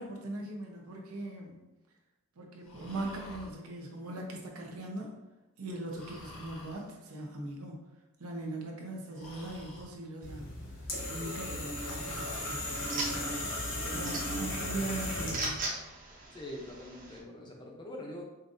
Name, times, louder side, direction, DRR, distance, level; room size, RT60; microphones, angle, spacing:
voice 1, 0.0-1.6 2.4-5.1 5.6-7.8 8.2-10.6 11.1-12.6 12.9-15.7, right 2 dB, 85° right, 0 dB, 0.8 m, -40 dB
Breathing, 2.6-3.5 5.9-6.9 9.1-9.9 12.0-12.5 14.7-15.4, left 1 dB, 85° left, 1.4 m, -49 dB
sound 1, 10.2-15.6, left 1 dB, 55° left, 1.0 m, -36 dB
sound 2, 11.8-17.2, right 2 dB, 35° right, 0.7 m, -41 dB
voice 2, 16.3-18.2, left 1 dB, 20° left, -1 dB, 0.6 m, -44 dB
5.4 x 2.5 x 2.6 m, 1.0 s
head